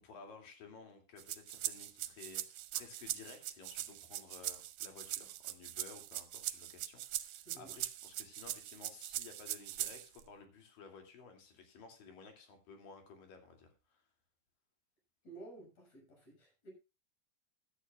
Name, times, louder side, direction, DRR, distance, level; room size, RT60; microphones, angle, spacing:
voice 1, 0.0-14.0, left 5 dB, 80° left, 4.3 m, -55 dB
sound 1, 1.2-10.2, right 14 dB, 75° right, 2.4 m, -41 dB
voice 2, 7.5-7.8 15.2-16.7, right 2 dB, 50° left, 7.9 m, -53 dB
17.0 x 11.0 x 2.4 m
omnidirectional pair, 3.9 m